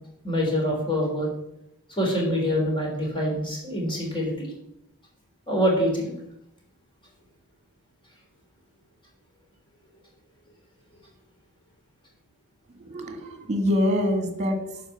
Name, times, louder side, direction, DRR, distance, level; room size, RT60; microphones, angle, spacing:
voice 1, 0.2-1.3 1.9-4.5 5.5-6.1, equal, 25° left, -2 dB, 3.5 m, -25 dB
voice 2, 12.8-14.8, left 1 dB, 30° right, 6 dB, 1.6 m, -25 dB
11.0 x 4.8 x 6.8 m, 0.80 s
head